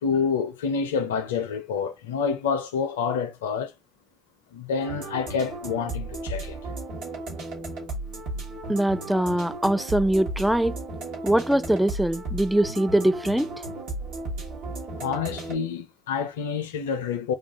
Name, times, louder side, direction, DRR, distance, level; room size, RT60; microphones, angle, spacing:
voice 1, 0.0-3.7 4.5-6.6 15.0-17.3, left 6 dB, 90° left, 0.5 m, -28 dB
sound 1, 4.8-15.5, right 2 dB, 70° right, 1.7 m, -35 dB
voice 2, 8.7-10.8 11.2-13.5, right 1 dB, 5° right, 0.5 m, -22 dB
3.3 x 2.4 x 3.6 m
hypercardioid pair, 55°, 0 cm